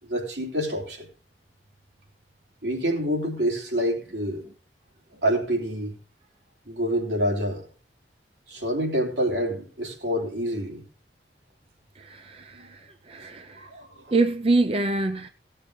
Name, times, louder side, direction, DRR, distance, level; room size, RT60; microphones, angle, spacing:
voice 1, 0.0-1.1 2.6-4.4 5.1-6.0 6.6-7.7 8.5-10.8 12.5-12.7 13.6-14.1, equal, 80° right, 3.1 m, -27 dB
voice 2, 12.0-12.8 13.1-13.6 14.1-15.3, right 2 dB, 35° right, 0.5 m, -25 dB
17.0 x 6.6 x 3.9 m
head